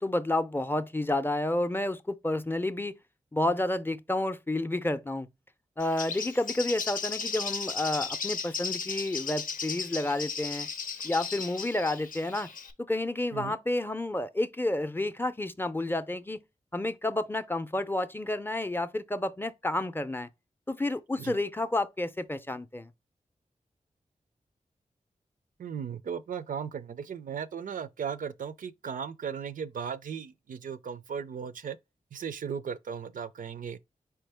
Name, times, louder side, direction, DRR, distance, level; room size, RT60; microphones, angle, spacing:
voice 1, 0.0-3.0 3.3-5.3 5.8-10.7 11.0-12.5 12.9-16.4 16.7-20.3 20.7-22.9, left 1 dB, 15° left, 0.5 m, -30 dB
Bird, 5.8-12.7, left 5 dB, 90° left, 0.6 m, -35 dB
voice 2, 25.6-31.8 32.1-33.8, right 7 dB, 75° right, 0.4 m, -36 dB
4.4 x 3.5 x 3.4 m
cardioid pair, 65°, 14 cm